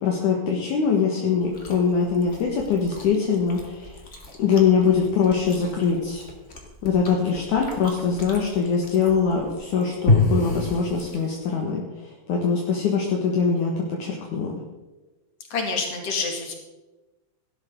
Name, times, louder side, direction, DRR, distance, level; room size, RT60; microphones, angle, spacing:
voice 1, 0.0-4.0 4.4-6.2 6.8-14.6, left 6 dB, 65° left, -1 dB, 2.9 m, -23 dB
Chewing mastication, 1.4-11.6, left 2 dB, 25° left, 1.9 m, -30 dB
voice 2, 15.5-16.6, left 4 dB, 45° left, 1 dB, 3.4 m, -27 dB
17.5 x 12.5 x 3.8 m, 1.1 s
omnidirectional pair, 4.0 m